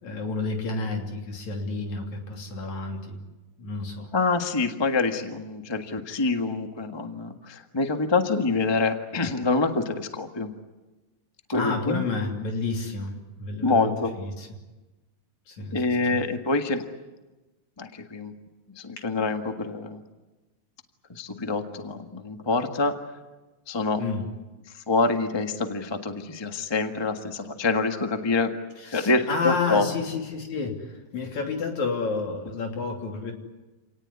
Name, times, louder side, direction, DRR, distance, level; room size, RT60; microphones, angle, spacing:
voice 1, 0.0-3.2 3.6-4.1 11.5-14.5 15.5-16.2 19.0-19.1 24.0-24.3 28.8-33.3, left 3 dB, 65° left, 3 dB, 4.3 m, -30 dB
voice 2, 4.1-10.5 11.5-12.0 13.6-14.1 15.7-16.8 17.8-18.3 18.8-20.0 21.1-22.9 23.7-24.0 24.9-28.5 28.9-29.9, left 3 dB, 20° left, 6 dB, 0.6 m, -26 dB
28.0 x 18.5 x 9.8 m, 1.1 s
omnidirectional pair, 3.6 m